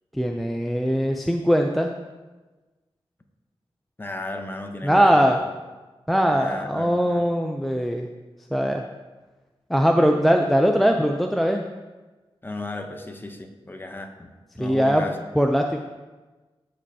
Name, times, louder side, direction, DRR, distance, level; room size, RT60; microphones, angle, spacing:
voice 1, 0.1-1.9 4.8-5.4 6.1-8.1 8.5-8.8 9.7-11.6 14.6-15.0 15.4-15.8, equal, ahead, 3 dB, 0.4 m, -20 dB
voice 2, 4.0-5.5 6.3-7.3 12.4-14.3 14.6-15.2, left 2 dB, 20° left, 5 dB, 0.7 m, -34 dB
14.0 x 5.2 x 2.7 m, 1.2 s
wide cardioid pair, 135°, 10 cm